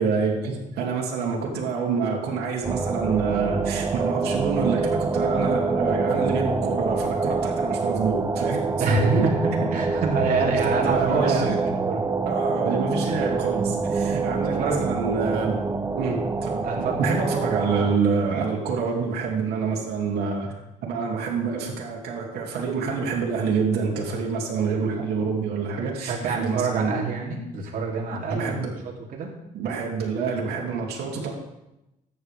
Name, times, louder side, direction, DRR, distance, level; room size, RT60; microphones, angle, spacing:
voice 1, 0.0-8.6 8.9-9.3 10.2-11.6 12.2-15.6 16.0-20.5 20.8-27.0 28.3-28.7 29.5-31.3, right 5 dB, 70° right, -3 dB, 2.8 m, -27 dB
sound 1, 2.6-18.0, right 4 dB, 15° right, 0.5 m, -26 dB
voice 2, 8.8-12.0 13.1-13.2 14.3-14.9 16.6-17.1 25.8-29.3, right 4 dB, 55° right, -2 dB, 3.1 m, -27 dB
13.5 x 9.2 x 3.5 m, 0.91 s
cardioid pair, 110°, 17 cm